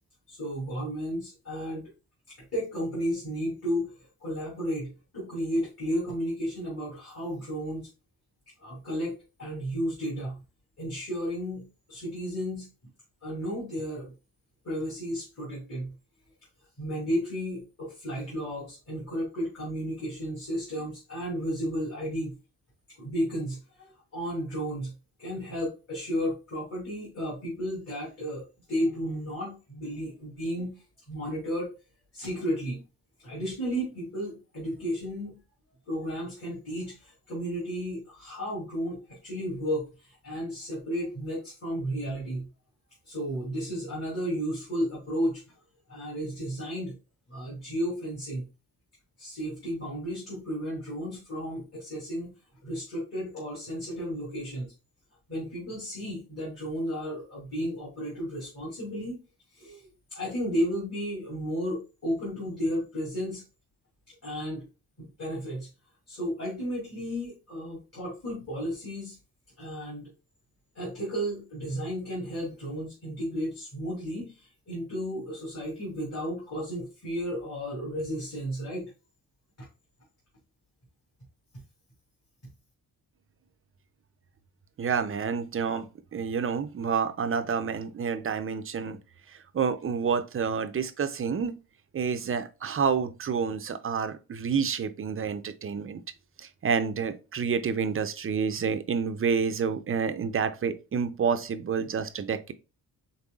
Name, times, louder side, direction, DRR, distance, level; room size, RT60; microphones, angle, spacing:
voice 1, 0.3-1.9 2.5-7.9 8.6-9.1 9.4-10.4 10.8-12.7 13.2-14.1 14.6-15.9 16.8-22.3 23.0-24.9 25.2-30.8 31.1-31.7 32.1-32.8 33.2-35.4 35.9-42.5 43.0-45.4 45.9-46.9 47.3-48.5 49.2-52.3 52.6-54.7 55.3-59.2 59.5-63.4 64.1-64.6 65.0-65.7 66.1-69.2 69.6-70.1 70.7-78.8, equal, 40° left, 2.8 m, -33 dB
voice 2, 84.8-89.0 89.3-91.6 91.9-96.0 96.4-102.5, right 6 dB, 35° right, 0.5 m, -29 dB
5.3 x 4.0 x 2.3 m
wide cardioid pair, 150°, 37 cm